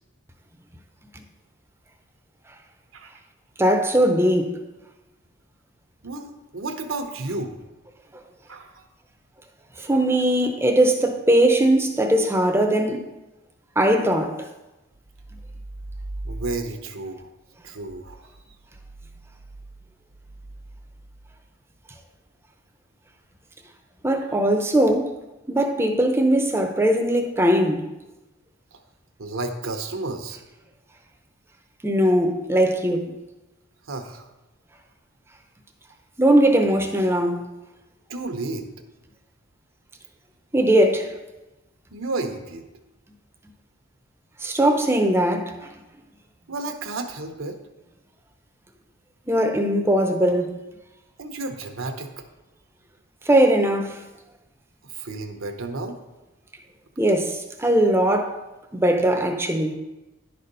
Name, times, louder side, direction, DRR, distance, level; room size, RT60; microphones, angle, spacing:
voice 1, 3.6-4.6 9.8-13.1 13.8-14.5 24.0-25.1 25.5-27.9 31.8-33.1 36.2-37.4 40.5-41.1 44.4-45.7 49.3-50.5 53.3-54.0 57.0-58.4 58.7-59.8, right 1 dB, 10° right, 0.6 m, -20 dB
voice 2, 6.0-7.6 8.5-8.8 16.2-17.3 17.6-18.2 29.2-30.4 33.9-34.2 38.1-38.7 41.9-42.6 46.5-47.6 51.2-52.2 54.8-56.0, right 2 dB, 75° right, 0.9 m, -32 dB
10.5 x 4.2 x 5.3 m
head